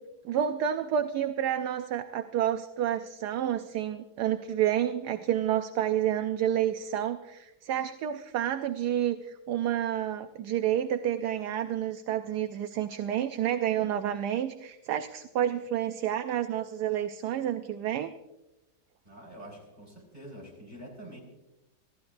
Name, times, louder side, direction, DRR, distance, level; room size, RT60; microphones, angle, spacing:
voice 1, 0.2-18.1, right 10 dB, 70° right, 8 dB, 1.2 m, -29 dB
voice 2, 19.0-21.2, right 1 dB, 25° right, -1 dB, 4.9 m, -46 dB
27.0 x 15.0 x 2.6 m, 1.0 s
omnidirectional pair, 1.9 m